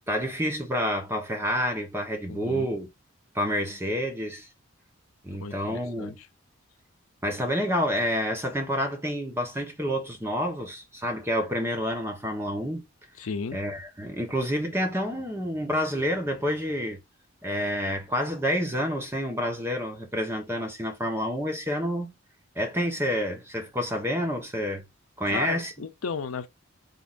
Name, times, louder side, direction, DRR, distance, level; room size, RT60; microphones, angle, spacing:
voice 1, 0.1-2.9 3.3-4.5 5.2-6.1 7.2-12.8 13.5-17.0 17.4-22.1 22.5-24.8 25.2-25.7, equal, 10° right, 1.1 m, -28 dB
voice 2, 2.3-2.7 5.4-6.3 13.2-13.6 25.3-26.5, left 5 dB, 85° left, 0.5 m, -34 dB
3.9 x 3.6 x 2.5 m
head